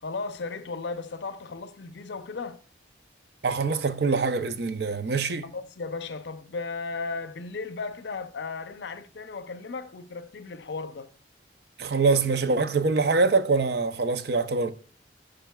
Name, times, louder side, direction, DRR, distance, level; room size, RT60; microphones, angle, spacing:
voice 1, 0.0-2.6 5.4-11.1, left 4 dB, 70° left, 0.5 m, -35 dB
voice 2, 3.4-5.4 11.8-14.7, right 4 dB, 60° right, 0.5 m, -24 dB
10.0 x 5.0 x 2.3 m
head